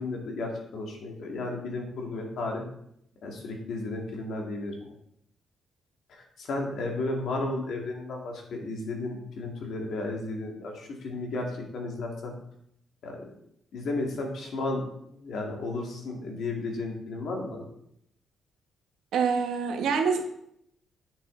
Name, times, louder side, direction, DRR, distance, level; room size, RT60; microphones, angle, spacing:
voice 1, 0.0-2.6 3.2-4.9 6.1-12.3 13.0-13.2 13.7-17.6, left 2 dB, 55° left, 1 dB, 2.0 m, -33 dB
voice 2, 19.1-20.3, right 5 dB, 80° right, 4 dB, 1.3 m, -26 dB
8.9 x 7.2 x 3.8 m, 0.71 s
cardioid pair, 175°, 0 cm